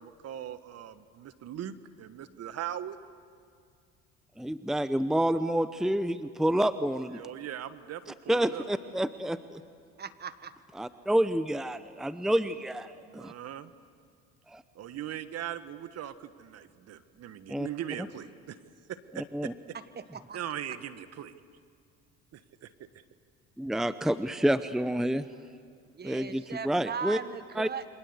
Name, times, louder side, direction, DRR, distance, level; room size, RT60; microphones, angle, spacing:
voice 1, 0.0-3.0 7.1-8.6 13.0-13.7 14.7-18.6 18.9-19.8 20.3-21.3 22.3-22.7, right 10 dB, 55° right, 13 dB, 1.4 m, -40 dB
voice 2, 4.4-7.2 8.3-9.6 10.8-13.3 14.5-14.6 17.5-17.7 19.2-19.5 23.6-25.2 26.0-27.2 27.6-27.7, right 1 dB, ahead, 13 dB, 0.8 m, -28 dB
voice 3, 10.0-10.5 19.9-20.4 25.9-27.9, right 6 dB, 30° right, 13 dB, 1.6 m, -38 dB
28.0 x 25.0 x 8.1 m, 2.2 s
supercardioid pair, 90°, 31 cm